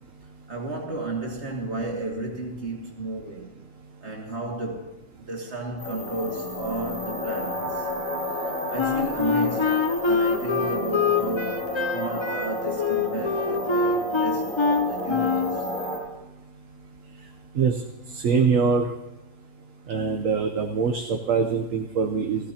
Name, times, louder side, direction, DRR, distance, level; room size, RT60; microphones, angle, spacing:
voice 1, 0.5-3.5 4.0-5.0 5.3-7.9 8.7-15.7, right 2 dB, 45° right, 2.5 m, -33 dB
sound 1, 5.8-16.0, left 1 dB, 65° left, 4.7 m, -31 dB
Wind instrument woodwind instrument, 8.8-15.6, left 5 dB, 35° left, 0.5 m, -25 dB
voice 2, 18.1-18.9 19.9-22.5, right 5 dB, 65° right, 1.2 m, -23 dB
18.0 x 15.0 x 2.9 m
omnidirectional pair, 1.6 m